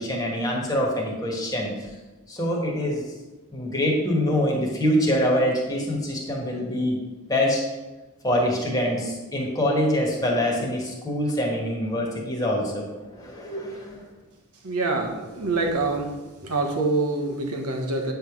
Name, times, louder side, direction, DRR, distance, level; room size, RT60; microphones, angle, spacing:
voice 1, 0.0-1.9 2.3-3.0 3.5-7.0 7.3-7.6 8.2-14.0, equal, 15° left, -1 dB, 1.4 m, -25 dB
voice 2, 14.6-16.1 16.4-18.1, right 3 dB, 90° right, 2 dB, 1.3 m, -25 dB
8.9 x 3.4 x 6.0 m, 1.2 s
head